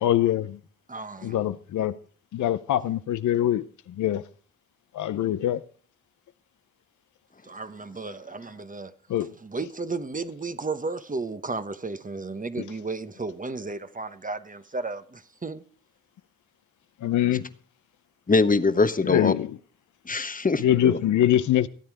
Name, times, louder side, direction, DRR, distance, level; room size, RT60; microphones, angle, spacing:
voice 1, 0.0-0.6 1.2-1.9 2.3-4.2 4.9-5.6 9.1-9.3 12.6-12.7 17.0-17.5 19.0-19.5 20.6-21.7, left 12 dB, 75° left, 0.7 m, -23 dB
voice 2, 0.9-1.4 7.4-8.9 9.4-15.6, right 3 dB, 25° right, 1.1 m, -34 dB
voice 3, 18.3-19.3 20.0-21.0, left 3 dB, 30° left, 1.1 m, -23 dB
15.5 x 8.9 x 4.9 m
supercardioid pair, 50°, 30 cm